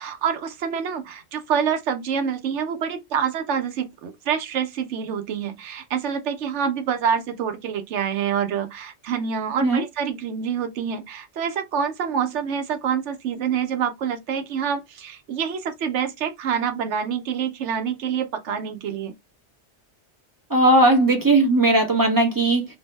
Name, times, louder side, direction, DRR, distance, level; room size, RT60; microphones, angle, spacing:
voice 1, 0.0-19.1, right 7 dB, 90° right, 1.0 m, -26 dB
voice 2, 20.5-22.7, right 2 dB, 25° right, 0.6 m, -17 dB
2.6 x 2.1 x 3.0 m
omnidirectional pair, 1.2 m